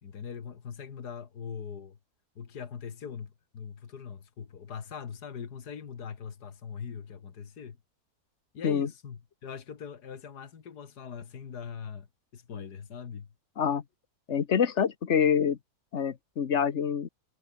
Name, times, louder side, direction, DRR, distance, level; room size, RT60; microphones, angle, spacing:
voice 1, 0.0-2.0 2.4-7.8 8.5-12.1 12.3-13.3, left 7 dB, 80° left, 2.3 m, -41 dB
voice 2, 14.3-15.6 15.9-17.1, left 7 dB, 50° left, 1.4 m, -26 dB
omnidirectional pair, 1.7 m